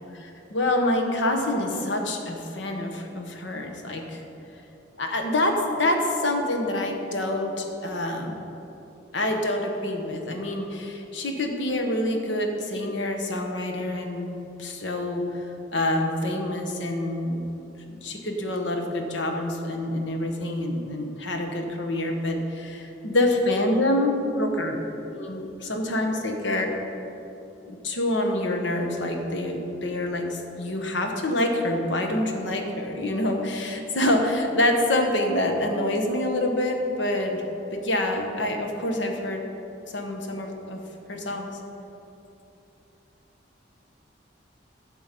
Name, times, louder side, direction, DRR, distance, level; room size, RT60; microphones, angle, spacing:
voice 1, 0.2-4.2 5.0-8.4 9.1-15.3 15.7-17.5 17.9-24.8 25.1-26.7 27.7-37.4 37.7-39.4 39.9-40.8 41.1-41.5, left 1 dB, 85° left, 3 dB, 1.2 m, -26 dB
11.0 x 6.7 x 5.2 m, 2.9 s
head